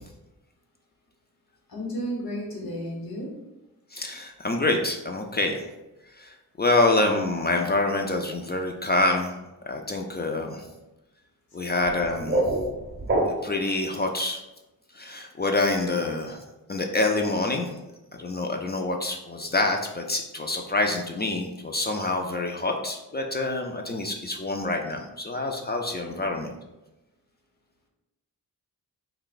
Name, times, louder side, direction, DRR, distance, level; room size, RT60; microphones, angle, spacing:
voice 1, 1.7-3.3, equal, 65° left, -2 dB, 1.1 m, -32 dB
voice 2, 3.9-5.7 6.2-9.4 9.7-10.7 11.5-12.4 13.2-14.4 14.9-16.4 16.7-17.8 18.1-26.5, left 2 dB, 25° left, 3 dB, 0.4 m, -26 dB
sound 1, 11.9-13.7, right 1 dB, 30° right, 0.7 m, -27 dB
2.3 x 2.2 x 3.9 m, 0.98 s
cardioid pair, 45°, 38 cm